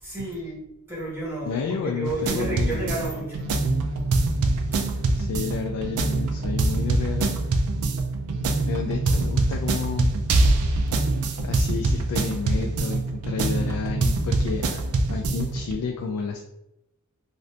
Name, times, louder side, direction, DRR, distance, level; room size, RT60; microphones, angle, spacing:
voice 1, 0.0-3.5, right 2 dB, 10° right, -8 dB, 1.2 m, -31 dB
voice 2, 1.5-2.8 5.1-7.3 8.7-10.1 11.4-14.8 15.1-16.4, left 5 dB, 85° left, 2 dB, 0.3 m, -30 dB
sound 1, 2.1-15.7, right 2 dB, 80° right, 0.4 m, -24 dB
2.6 x 2.5 x 3.2 m, 0.87 s
head